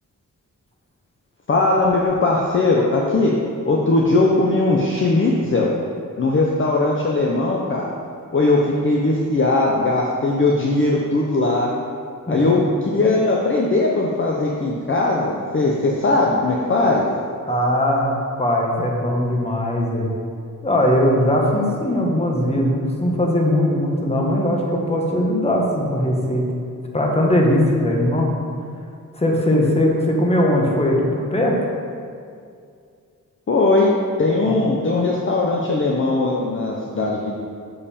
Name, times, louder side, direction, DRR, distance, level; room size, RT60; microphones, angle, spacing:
voice 1, 1.5-3.3 3.7-5.7 6.2-7.9 8.3-11.7 12.3-17.1 33.5-33.9 34.2-37.3, left 2 dB, 40° left, -2 dB, 0.7 m, -19 dB
voice 2, 12.3-12.6 17.5-20.1 20.6-26.4 26.9-28.3 29.1-31.6 34.4-34.6, left 1 dB, 20° left, -1 dB, 1.2 m, -20 dB
6.7 x 5.4 x 4.3 m, 2.3 s
wide cardioid pair, 95°, 33 cm